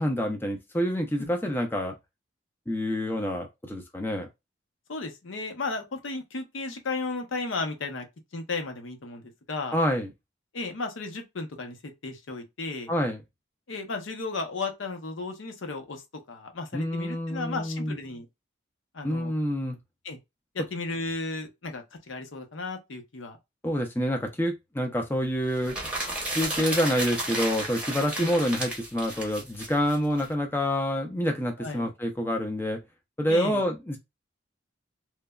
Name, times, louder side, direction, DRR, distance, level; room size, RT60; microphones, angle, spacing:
voice 1, 0.0-1.9 2.7-4.3 9.7-10.1 12.9-13.2 16.7-18.0 19.0-19.8 23.6-25.8 26.3-32.8 33.2-34.0, equal, 10° left, 0.4 m, -27 dB
voice 2, 1.2-1.5 4.9-8.0 8.3-9.8 10.5-12.9 13.7-16.0 16.3-18.3 18.9-19.3 20.0-20.2 20.5-23.4 28.1-28.4 31.6-31.9 33.3-33.6, left 3 dB, 85° left, 0.7 m, -34 dB
sound 1, 25.5-30.2, right 1 dB, 5° right, 0.7 m, -33 dB
3.1 x 2.1 x 2.2 m
head